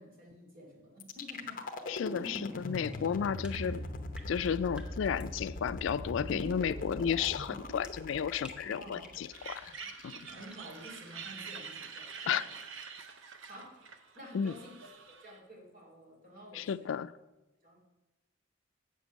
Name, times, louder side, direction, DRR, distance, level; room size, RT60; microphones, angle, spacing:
voice 1, 0.0-1.6 8.8-9.1 10.1-12.6 13.5-16.9 17.6-17.8, equal, 45° right, 2.8 m, -51 dB
sound 1, 1.0-11.0, left 1 dB, 45° left, 0.8 m, -41 dB
voice 2, 1.9-3.9 4.3-9.7 10.0-10.1 12.3-12.4 14.3-14.5 16.5-17.1, left 7 dB, 70° left, 0.3 m, -33 dB
sound 2, 2.9-5.6 7.2-7.4 7.8-9.3 10.3-10.8, left 1 dB, 5° right, 0.8 m, -54 dB
sound 3, 9.3-15.4, right 6 dB, 75° right, 0.8 m, -46 dB
7.9 x 6.9 x 6.2 m
head